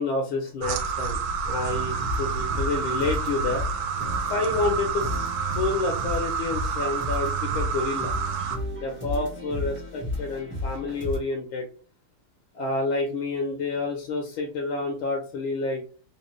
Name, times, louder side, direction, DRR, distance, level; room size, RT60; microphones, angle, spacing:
voice 1, 0.0-3.6 4.3-8.1 8.8-11.7 12.5-15.8, left 3 dB, 75° left, 2 dB, 1.5 m, -29 dB
sound 1, 0.6-8.6, right 6 dB, 80° right, 1.5 m, -29 dB
sound 2, 1.7-11.2, left 2 dB, 10° right, 0.9 m, -34 dB
3.6 x 2.9 x 3.1 m, 0.39 s
omnidirectional pair, 2.4 m